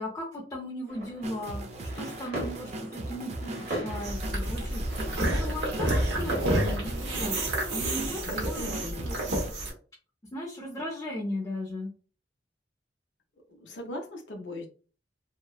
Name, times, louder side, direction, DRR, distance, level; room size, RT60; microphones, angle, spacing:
voice 1, 0.0-9.2 10.3-11.9, left 1 dB, 20° left, -3 dB, 0.5 m, -37 dB
sound 1, 0.9-7.3, right 1 dB, 60° right, 1.1 m, -40 dB
sound 2, 1.2-9.5, right 1 dB, 35° right, 0.3 m, -38 dB
sound 3, 4.0-9.7, right 1 dB, 85° right, 0.9 m, -29 dB
voice 2, 8.2-9.1 13.5-14.7, left 1 dB, 85° left, 3 dB, 0.6 m, -39 dB
2.7 x 2.1 x 2.3 m, 0.38 s
head